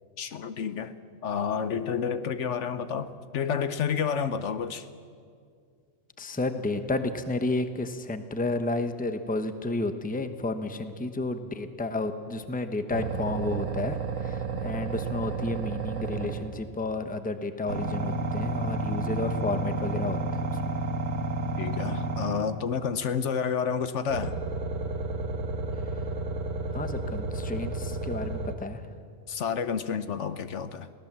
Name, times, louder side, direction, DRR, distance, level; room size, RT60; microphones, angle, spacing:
voice 1, 0.2-0.9 1.2-4.9 21.6-24.4 29.3-30.9, left 7 dB, 70° left, 12 dB, 1.1 m, -30 dB
voice 2, 6.2-20.2 20.7-20.8 26.7-28.8, left 2 dB, 10° left, 9 dB, 0.8 m, -31 dB
sound 1, 12.9-16.7 17.7-22.7 24.1-28.6, right 3 dB, 80° right, 1.7 m, -31 dB
23.0 x 17.0 x 7.4 m, 2.2 s
omnidirectional pair, 1.3 m